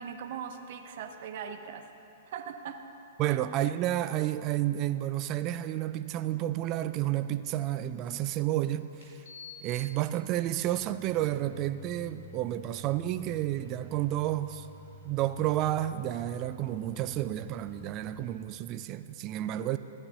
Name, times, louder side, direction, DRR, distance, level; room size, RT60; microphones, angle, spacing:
voice 1, 0.0-1.9 2.3-2.8 3.2-3.4, right 7 dB, 55° right, 0.8 m, -40 dB
voice 2, 3.2-9.2 9.6-14.7 15.0-19.8, right 13 dB, 35° right, 0.3 m, -31 dB
sound 1, 8.0-8.1 9.0-18.3, equal, 70° left, 2.0 m, -50 dB
15.0 x 9.9 x 2.9 m
hypercardioid pair, 110°, 0 cm